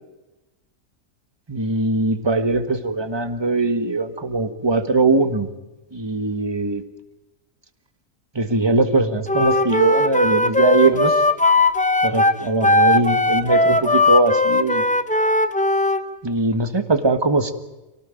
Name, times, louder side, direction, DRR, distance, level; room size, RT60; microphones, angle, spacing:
voice 1, 1.5-5.5 5.9-6.8 8.3-11.2 12.0-14.8 16.2-17.5, right 3 dB, 20° right, 10 dB, 1.4 m, -20 dB
Wind instrument woodwind instrument, 9.3-16.0, left 2 dB, 5° left, 1.0 m, -18 dB
24.0 x 18.5 x 9.1 m, 1.0 s
omnidirectional pair, 1.4 m